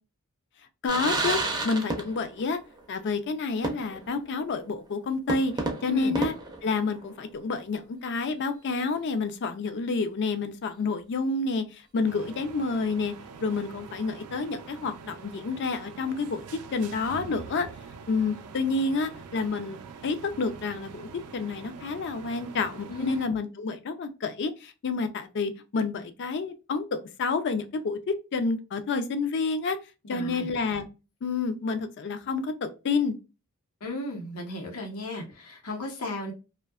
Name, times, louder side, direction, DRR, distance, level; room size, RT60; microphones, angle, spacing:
voice 1, 0.8-1.4 1.6-2.6 2.9-5.5 5.8-6.3 6.6-13.1 13.4-16.4 16.7-17.7 18.1-29.8 30.1-30.9 31.2-33.1, left 4 dB, 55° left, 9 dB, 0.4 m, -29 dB
sound 1, 0.9-2.5 2.7-2.8 3.6-4.2 4.5-4.6 5.3-7.3, right 2 dB, 20° right, 0.4 m, -31 dB
sound 2, 12.0-23.3, right 5 dB, 85° right, 0.4 m, -44 dB
voice 2, 30.1-30.5 33.8-36.3, left 1 dB, 85° left, 1 dB, 0.8 m, -35 dB
2.6 x 2.2 x 2.3 m, 0.30 s
head